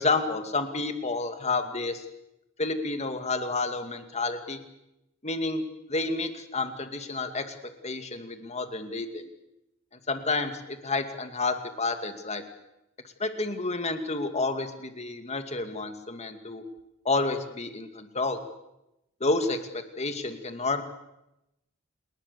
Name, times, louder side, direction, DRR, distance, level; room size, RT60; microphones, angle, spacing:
voice 1, 0.0-2.0 2.6-4.6 5.2-5.6 5.9-7.5 7.8-9.3 10.1-12.4 13.2-16.6 17.0-18.4 19.2-20.8, left 3 dB, 30° left, 7 dB, 2.4 m, -30 dB
28.5 x 20.0 x 7.0 m, 0.88 s
head